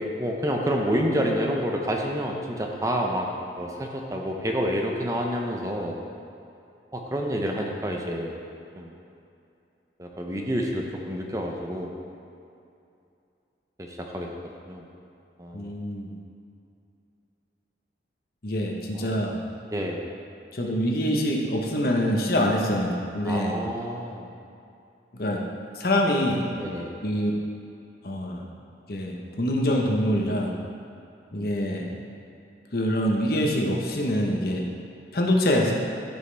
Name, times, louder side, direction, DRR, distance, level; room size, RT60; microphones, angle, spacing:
voice 1, 0.0-3.3 3.6-6.0 6.9-8.4 8.7-8.9 10.0-11.9 13.8-14.3 14.7-14.8 15.4-15.7 18.9-19.1 19.7-20.0 22.4-22.5 23.2-24.3 26.6-26.9 30.4-30.6, equal, 15° right, 0 dB, 0.6 m, -28 dB
voice 2, 15.5-16.1 18.4-19.4 20.5-23.5 25.1-25.4 25.8-26.5 27.0-27.3 28.0-28.4 28.9-30.5 31.3-31.9 32.7-34.7 35.1-35.7, equal, 55° left, 0 dB, 1.0 m, -25 dB
14.0 x 5.4 x 3.4 m, 2.6 s
head